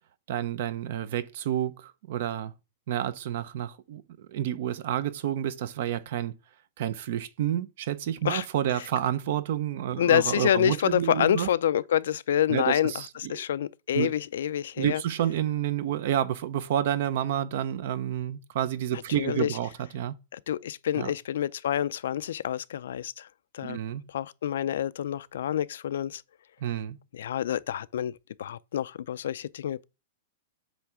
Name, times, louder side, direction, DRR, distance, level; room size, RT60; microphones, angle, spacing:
voice 1, 0.3-2.5 2.9-6.3 6.8-11.5 12.5-13.3 13.9-14.1 14.8-20.2 21.0-21.1 23.6-24.0 26.6-27.0, right 11 dB, 45° right, 0.7 m, -29 dB
voice 2, 10.0-12.9 13.3-15.0 19.2-19.6 20.3-23.3 23.5-23.8 24.1-26.2 27.1-28.1 28.4-29.8, left 10 dB, 65° left, 0.4 m, -27 dB
8.3 x 3.3 x 6.0 m
supercardioid pair, 175°, 0 cm